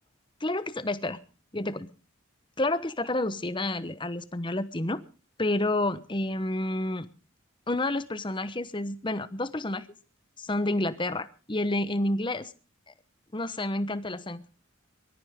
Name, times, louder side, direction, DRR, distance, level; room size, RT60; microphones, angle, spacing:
voice 1, 0.4-1.2 1.5-1.9 2.6-5.0 5.4-7.1 7.7-9.9 10.4-12.5 13.3-14.4, left 1 dB, 25° left, 14 dB, 1.0 m, -29 dB
23.0 x 13.5 x 3.6 m, 0.35 s
head